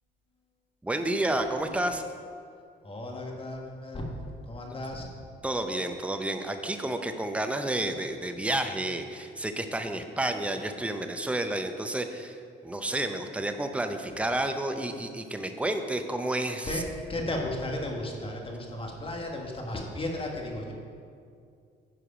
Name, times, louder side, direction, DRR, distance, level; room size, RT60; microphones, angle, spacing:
voice 1, 0.8-2.0 5.4-12.4 12.6-16.7, right 1 dB, 5° right, 7 dB, 0.6 m, -30 dB
voice 2, 2.8-4.0 4.5-5.2 16.6-20.7, left 1 dB, 25° left, 0 dB, 1.5 m, -34 dB
10.0 x 4.8 x 5.0 m, 2.3 s
cardioid pair, 90°, 20 cm